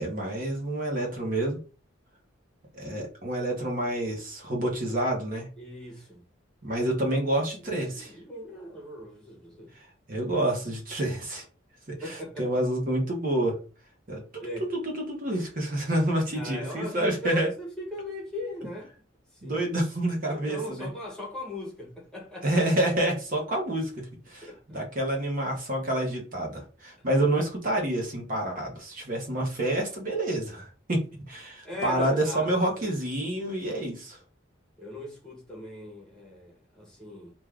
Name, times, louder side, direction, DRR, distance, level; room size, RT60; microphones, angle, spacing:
voice 1, 0.0-1.6 2.7-5.5 6.6-8.1 10.1-11.4 11.9-13.6 14.1-17.5 19.4-20.9 22.4-34.2, right 1 dB, 45° right, 1.0 m, -28 dB
voice 2, 5.6-6.2 7.7-9.7 12.0-12.5 14.4-14.7 16.3-18.9 19.3-19.6 20.2-22.5 24.4-24.8 31.6-32.5 32.8-32.9 34.8-37.3, left 1 dB, 5° left, 0.9 m, -38 dB
2.5 x 2.4 x 3.3 m
head